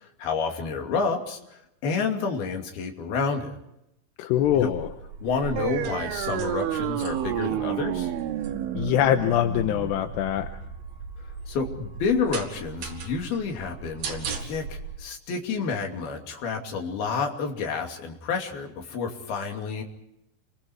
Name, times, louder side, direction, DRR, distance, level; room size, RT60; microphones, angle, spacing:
voice 1, 0.0-3.6 4.6-4.7 5.2-8.1 11.5-19.8, left 5 dB, 55° left, 3 dB, 4.3 m, -29 dB
voice 2, 4.2-4.9 8.8-10.5, left 11 dB, 75° left, 7 dB, 2.8 m, -23 dB
sound 1, 4.4-14.9, right 5 dB, 55° right, 4.2 m, -39 dB
sound 2, 5.6-12.6, right 11 dB, 85° right, 4.0 m, -31 dB
29.5 x 23.5 x 4.7 m, 0.82 s
omnidirectional pair, 5.5 m